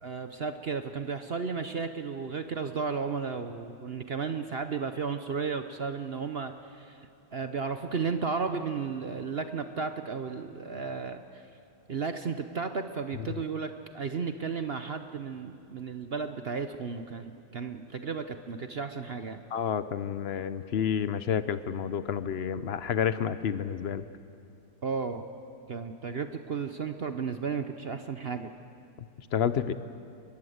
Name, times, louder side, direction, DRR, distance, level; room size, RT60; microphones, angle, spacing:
voice 1, 0.0-11.5 11.9-19.4 24.8-25.2 25.7-28.5, right 5 dB, 50° right, 8 dB, 0.7 m, -34 dB
voice 2, 19.5-24.0 29.3-29.7, left 8 dB, 65° left, 13 dB, 0.6 m, -29 dB
23.5 x 21.0 x 7.9 m, 2.5 s
omnidirectional pair, 1.9 m